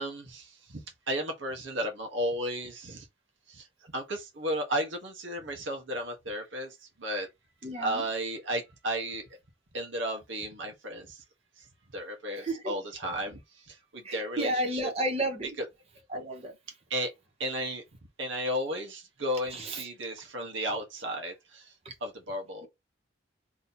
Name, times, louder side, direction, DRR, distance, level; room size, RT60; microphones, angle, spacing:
voice 1, 0.0-3.1 3.5-7.3 7.8-9.2 9.7-11.2 11.6-11.7 11.9-14.9 15.6-15.7 15.9-16.0 16.9-17.1 17.4-17.8 18.2-21.7 22.0-22.7, equal, 80° right, 1.2 m, -34 dB
voice 2, 7.6-8.0 12.4-12.7 14.0-15.6 16.1-16.5 19.5-19.9 21.8-21.9 22.6-22.7, right 1 dB, 30° right, 1.1 m, -32 dB
3.0 x 2.8 x 4.0 m
head